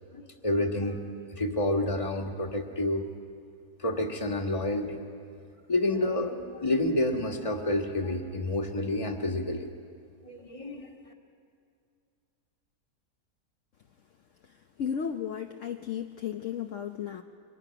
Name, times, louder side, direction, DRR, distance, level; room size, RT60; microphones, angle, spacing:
voice 1, 0.1-3.1 3.8-5.0 5.7-9.7 10.2-10.9, left 1 dB, 20° left, 2 dB, 1.7 m, -29 dB
voice 2, 14.8-17.2, left 8 dB, 60° left, 4 dB, 1.1 m, -34 dB
30.0 x 24.0 x 5.9 m, 2.3 s
omnidirectional pair, 1.6 m